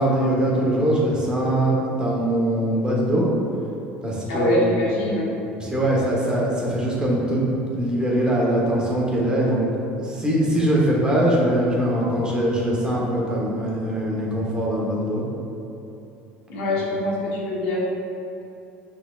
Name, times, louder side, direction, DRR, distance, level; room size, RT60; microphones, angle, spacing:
voice 1, 0.0-3.3 4.0-4.6 5.6-7.4 7.7-9.6 10.0-15.3, right 1 dB, 15° right, -4 dB, 1.1 m, -22 dB
voice 2, 4.3-5.3 16.5-17.8, left 1 dB, 80° left, -5 dB, 1.0 m, -24 dB
6.0 x 3.5 x 2.4 m, 2.8 s
supercardioid pair, 100°, 5 cm